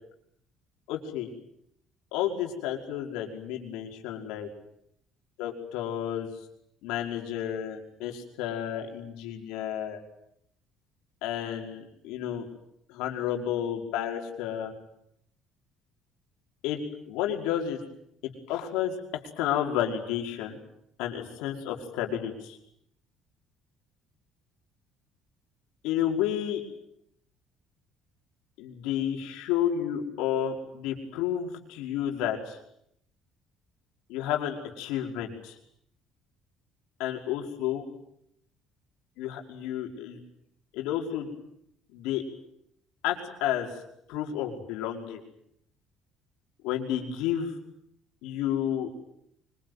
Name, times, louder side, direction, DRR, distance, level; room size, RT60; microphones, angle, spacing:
voice 1, 0.9-1.3 2.1-4.5 5.4-6.3 6.8-10.0 11.2-12.5 12.9-14.7 16.6-16.8 17.1-17.8 18.2-19.0 19.4-20.6 21.0-22.6 25.8-26.6 28.6-32.6 34.1-35.6 37.0-37.8 39.2-40.2 40.7-41.3 41.9-42.2 43.0-43.7 44.1-45.2 46.6-47.6 48.2-48.9, left 10 dB, 85° left, 2 dB, 5.3 m, -31 dB
25.0 x 23.0 x 9.5 m, 0.76 s
cardioid pair, 95°, 0 cm